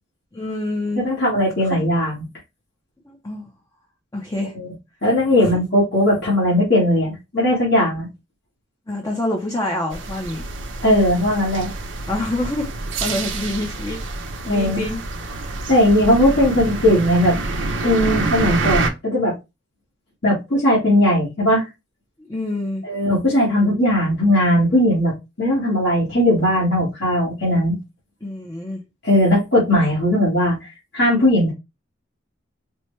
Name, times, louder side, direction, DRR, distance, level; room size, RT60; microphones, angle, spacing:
voice 1, 0.3-1.0 3.0-3.5 4.1-4.5 5.4-5.5 8.9-10.4 12.1-12.7 13.0-14.0 14.4-15.0 15.6-15.7 22.3-22.8 28.2-28.8, left 1 dB, 20° left, 0.6 m, -26 dB
voice 2, 1.0-2.2 4.5-4.7 5.0-8.1 10.8-11.7 14.5-14.8 15.7-17.4 17.8-19.3 20.2-21.7 22.8-27.8 29.0-31.5, left 1 dB, 60° left, 1.6 m, -18 dB
sound 1, 9.9-18.9, right 3 dB, 85° right, 0.7 m, -27 dB
4.4 x 2.2 x 3.1 m
head